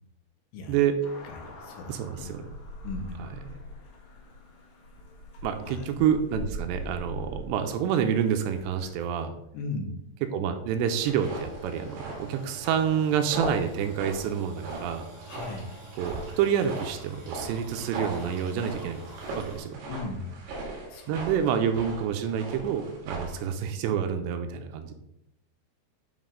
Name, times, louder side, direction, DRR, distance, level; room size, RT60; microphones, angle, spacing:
voice 1, 0.7-1.0 1.9-2.5 3.5-3.6 5.4-9.3 10.3-15.1 16.0-19.1 19.4-19.8 21.1-24.9, right 8 dB, 80° right, 7 dB, 2.8 m, -28 dB
sound 1, 1.0-9.2, equal, 70° left, 4.0 m, -42 dB
voice 2, 1.2-2.3 2.8-3.3 5.6-6.0 9.5-10.0 15.3-15.7 19.9-20.4 20.9-21.1, left 3 dB, 85° left, 4 dB, 3.5 m, -37 dB
sound 2, 10.9-19.6, right 2 dB, 45° right, 4.0 m, -47 dB
sound 3, 11.1-23.5, right 2 dB, 65° right, 3.8 m, -39 dB
9.3 x 4.9 x 3.8 m, 0.80 s
omnidirectional pair, 5.2 m